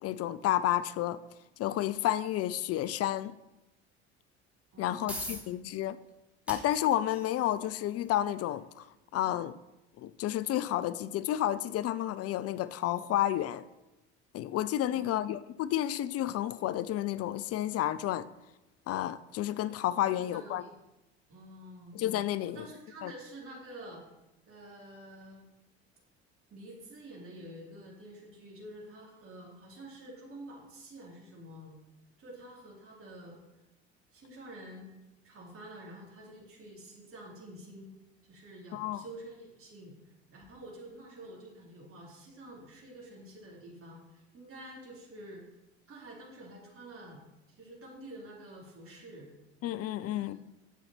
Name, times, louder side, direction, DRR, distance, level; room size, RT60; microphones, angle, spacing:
voice 1, 0.0-1.2 1.6-3.3 4.8-6.0 6.5-8.9 9.1-9.5 10.0-13.6 14.3-18.3 18.9-20.6 21.9-22.6 23.0-23.1 38.7-39.0 49.6-50.4, left 13 dB, 45° left, 0.5 m, -31 dB
sound 1, 4.6-19.5, right 1 dB, 5° right, 3.8 m, -51 dB
voice 2, 4.7-5.4 14.9-15.2 20.1-20.7 21.3-22.0 22.4-24.0 24.5-25.5 26.5-31.8 32.2-33.4 34.1-34.9 35.2-38.0 38.2-40.0 40.3-45.4 45.9-47.2 47.5-49.3 50.0-50.4, right 1 dB, 40° right, 3.8 m, -48 dB
10.5 x 7.8 x 4.4 m
hypercardioid pair, 75°, 33 cm